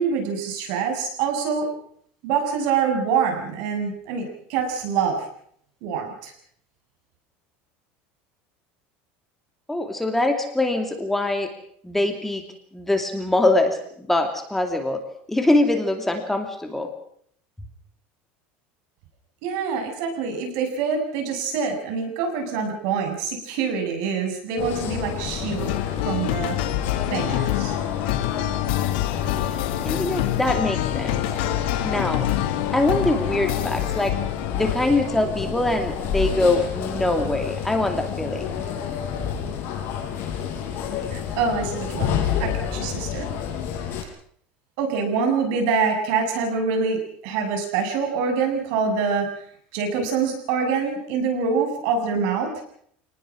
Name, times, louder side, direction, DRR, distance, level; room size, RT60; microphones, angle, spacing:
voice 1, 0.0-1.7 2.2-5.2 5.8-6.3 19.4-25.8 26.1-26.5 27.1-27.8 41.1-43.3 44.8-49.3 49.7-52.5, right 5 dB, 65° right, 4 dB, 7.5 m, -25 dB
voice 2, 9.7-11.5 11.8-12.4 12.7-15.0 15.3-16.9 29.8-31.2 31.8-32.3 32.7-34.2 34.5-38.5, left 2 dB, 5° left, 5 dB, 2.5 m, -23 dB
sound 1, 24.6-44.0, left 8 dB, 45° left, 5.9 m, -29 dB
sound 2, 25.6-34.7, left 13 dB, 85° left, 2.4 m, -27 dB
27.5 x 19.5 x 6.3 m, 0.65 s
cardioid pair, 150°, 5 cm